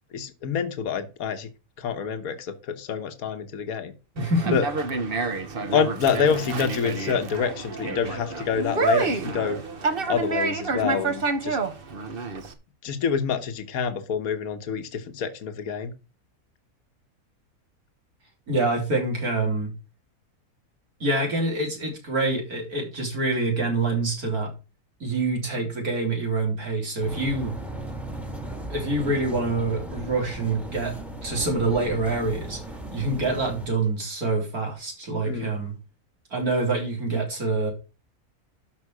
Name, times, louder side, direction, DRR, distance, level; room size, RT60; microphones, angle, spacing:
voice 1, 0.1-1.5 1.8-3.9 4.5-4.6 5.6-9.6 10.1-11.6 12.8-15.9 35.3-35.5, left 6 dB, 75° left, 8 dB, 1.6 m, -27 dB
Conversation, 4.2-12.5, right 3 dB, 40° right, 1.3 m, -28 dB
voice 2, 4.2-4.6 18.5-19.7 21.0-24.5 25.0-27.5 28.7-30.9 31.2-32.6 32.9-35.7 36.3-37.7, right 2 dB, 80° right, 0 dB, 4.4 m, -26 dB
sound 1, 27.0-33.7, right 1 dB, ahead, 1.5 m, -36 dB
12.5 x 5.3 x 4.8 m, 0.31 s
omnidirectional pair, 1.6 m